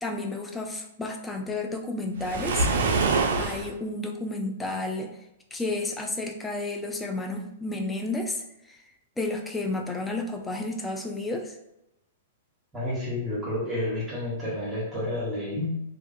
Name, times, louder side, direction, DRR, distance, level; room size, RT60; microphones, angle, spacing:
voice 1, 0.0-2.7 3.4-5.1 5.5-8.8 9.2-11.5, left 2 dB, 10° left, 3 dB, 0.4 m, -31 dB
Waves surf, 2.2-3.7, right 3 dB, 65° right, 0.4 m, -24 dB
voice 2, 12.7-15.8, left 1 dB, 10° right, -8 dB, 1.1 m, -30 dB
2.3 x 2.3 x 2.5 m, 0.85 s
hypercardioid pair, 115°, 0 cm